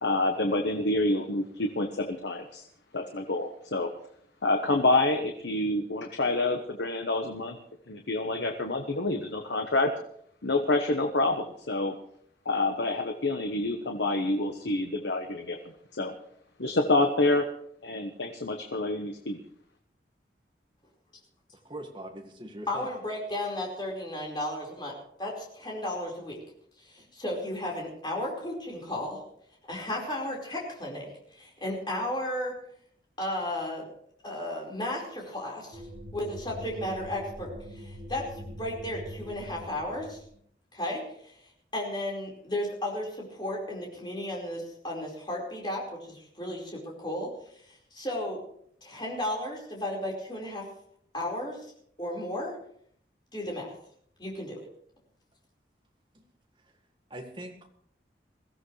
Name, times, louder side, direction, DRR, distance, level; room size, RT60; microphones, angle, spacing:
voice 1, 0.0-2.6 2.9-3.9 4.4-7.6 7.9-9.9 10.4-11.9 12.4-15.6 15.9-16.1 16.6-17.5 17.8-19.4, left 2 dB, 80° left, 5 dB, 1.2 m, -27 dB
voice 2, 21.7-22.9 57.1-57.7, right 1 dB, 25° right, 3 dB, 1.8 m, -41 dB
voice 3, 22.7-26.4 26.8-29.2 29.7-32.5 33.2-33.9 34.2-35.8 36.1-40.2 40.7-41.4 41.7-48.4 48.8-50.7 51.1-51.6 52.0-52.5 53.3-53.7 54.2-54.6, left 1 dB, 25° left, -2 dB, 4.8 m, -34 dB
sound 1, 35.7-40.4, equal, 40° right, 3.1 m, -43 dB
22.0 x 15.5 x 3.3 m, 0.65 s
head